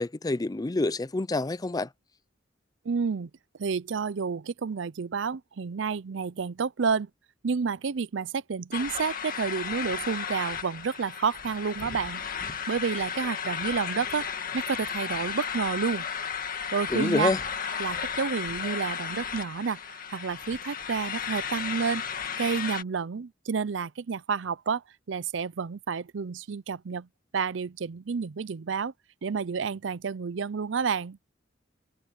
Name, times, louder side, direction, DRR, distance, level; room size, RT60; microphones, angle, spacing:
voice 1, 0.0-1.9 16.9-17.4, left 2 dB, 20° left, 0.5 m, -27 dB
voice 2, 2.8-3.3 3.6-7.1 7.4-12.3 12.7-14.3 14.5-16.1 16.7-17.3 17.8-22.0 22.4-24.8 25.1-27.1 27.3-28.9 29.2-31.2, right 5 dB, 80° right, 0.5 m, -30 dB
sound 1, 8.7-22.8, left 7 dB, 50° left, 1.9 m, -34 dB
head